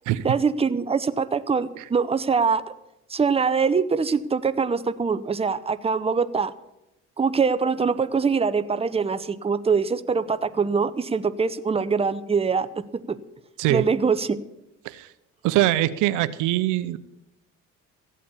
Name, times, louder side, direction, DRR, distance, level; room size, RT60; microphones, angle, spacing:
voice 1, 0.2-2.6 3.1-6.5 7.2-12.7 13.1-13.2 13.7-14.4, right 5 dB, 20° right, 12 dB, 0.8 m, -23 dB
voice 2, 15.4-17.0, right 15 dB, 85° right, 14 dB, 0.8 m, -23 dB
14.5 x 8.4 x 8.4 m, 0.90 s
cardioid pair, 90°, 30 cm